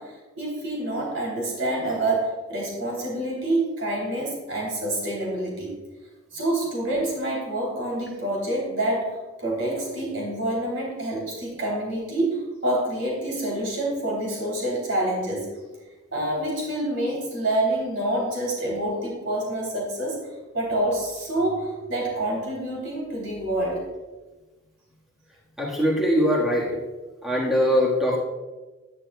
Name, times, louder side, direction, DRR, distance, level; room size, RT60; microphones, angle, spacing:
voice 1, 0.0-5.7 6.3-15.5 16.1-20.2 20.5-23.8, right 1 dB, 70° right, -3 dB, 3.1 m, -27 dB
voice 2, 25.6-26.7 27.2-28.2, equal, ahead, -4 dB, 1.5 m, -21 dB
11.0 x 10.0 x 2.3 m, 1.2 s
head